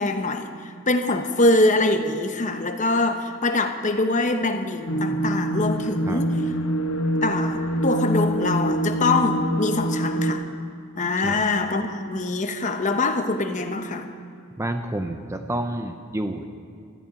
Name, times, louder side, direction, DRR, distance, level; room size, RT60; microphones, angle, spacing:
voice 1, 0.0-6.4 7.2-10.5 10.9-14.1, left 2 dB, 35° left, 7 dB, 0.9 m, -24 dB
sound 1, 4.9-10.3, right 1 dB, 65° left, 1.2 m, -25 dB
voice 2, 14.6-16.5, right 1 dB, 15° right, 6 dB, 0.5 m, -29 dB
13.5 x 8.7 x 10.0 m, 2.3 s
head